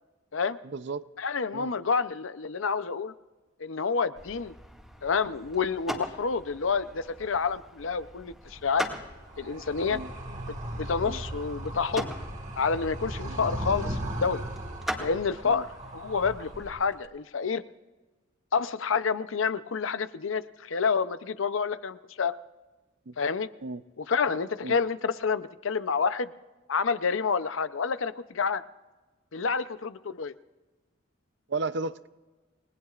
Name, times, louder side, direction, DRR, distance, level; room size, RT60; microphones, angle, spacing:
voice 1, 0.6-1.0 1.5-1.7 9.9-10.1 11.0-11.2 13.3-13.5 15.4-15.6 23.1-23.2 23.6-23.8 24.6-24.8 31.5-32.1, right 3 dB, 60° right, 0.6 m, -34 dB
voice 2, 1.2-3.1 3.6-4.5 5.0-8.9 9.4-10.0 10.7-12.1 12.6-14.4 15.0-15.7 15.9-17.6 18.5-22.3 23.2-23.5 24.0-26.3 26.7-28.6 29.3-30.3, left 5 dB, 85° left, 0.7 m, -28 dB
sound 1, 4.2-16.7, equal, ahead, 1.9 m, -42 dB
Animal, 8.4-17.0, right 1 dB, 40° right, 1.8 m, -38 dB
30.0 x 19.5 x 2.5 m
head